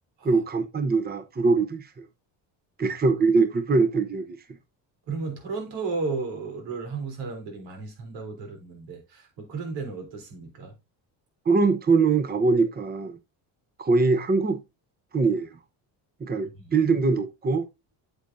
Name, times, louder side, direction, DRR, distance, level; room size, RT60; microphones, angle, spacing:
voice 1, 0.2-2.1 2.8-4.3 11.5-13.2 13.8-14.6 15.1-15.6 16.2-17.7, right 4 dB, 20° right, 0.9 m, -22 dB
voice 2, 5.1-10.7 16.6-16.8, right 4 dB, 80° right, 3.7 m, -34 dB
8.1 x 7.9 x 2.7 m
cardioid pair, 100°, 43 cm